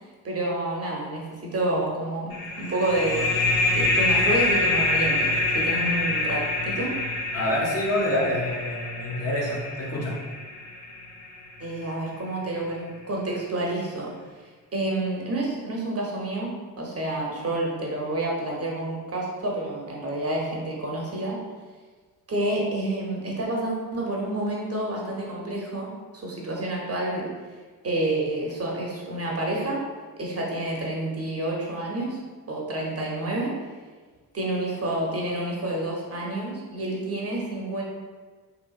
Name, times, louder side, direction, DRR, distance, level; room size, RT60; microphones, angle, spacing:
voice 1, 0.2-6.9 11.6-14.1 14.4-16.5 16.8-21.4 22.3-27.3 27.8-29.8 30.2-32.2 32.5-33.6 34.3-37.8, right 1 dB, 30° right, -2 dB, 0.7 m, -29 dB
sound 1, 2.3-11.6, left 2 dB, 85° left, 0.6 m, -26 dB
voice 2, 7.3-10.2, left 1 dB, 30° left, -3 dB, 0.7 m, -27 dB
2.8 x 2.4 x 2.3 m, 1.4 s
hypercardioid pair, 40°, 47 cm